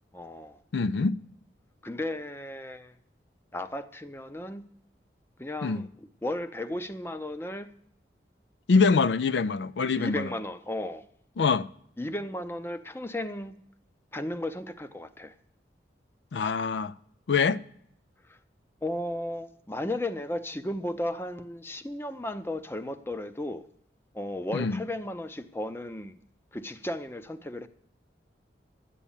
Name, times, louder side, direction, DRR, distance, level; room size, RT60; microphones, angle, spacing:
voice 1, 0.1-0.6 1.8-2.9 3.5-4.6 5.4-7.7 10.0-11.0 12.0-13.5 14.1-15.3 18.3-18.4 18.8-23.6 24.1-26.2 26.5-27.7, left 1 dB, 15° left, 0.6 m, -34 dB
voice 2, 0.7-1.2 5.6-5.8 8.7-10.3 11.4-11.7 16.3-16.9 17.3-17.6 24.5-24.8, left 4 dB, 80° left, 0.4 m, -24 dB
12.0 x 8.5 x 7.1 m
head